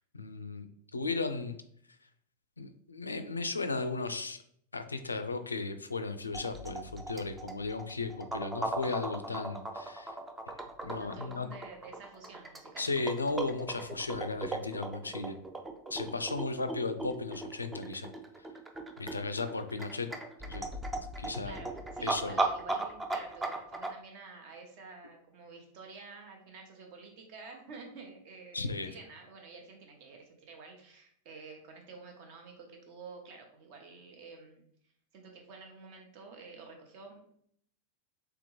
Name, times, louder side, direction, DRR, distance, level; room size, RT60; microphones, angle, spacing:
voice 1, 0.1-1.6 2.6-4.4 4.7-10.1 10.8-11.5 12.8-15.4 15.9-18.1 19.0-20.1 20.4-20.7 21.2-21.6 22.0-22.4 28.5-29.0, left 3 dB, 80° left, 9 dB, 0.3 m, -35 dB
sound 1, 6.3-23.9, right 2 dB, 10° right, 0.5 m, -37 dB
voice 2, 11.0-12.8 15.0-15.1 21.1-34.6 35.1-37.4, right 4 dB, 45° right, 2 dB, 0.9 m, -50 dB
3.5 x 3.4 x 3.1 m, 0.66 s
figure-of-eight pair, 90°, 0 cm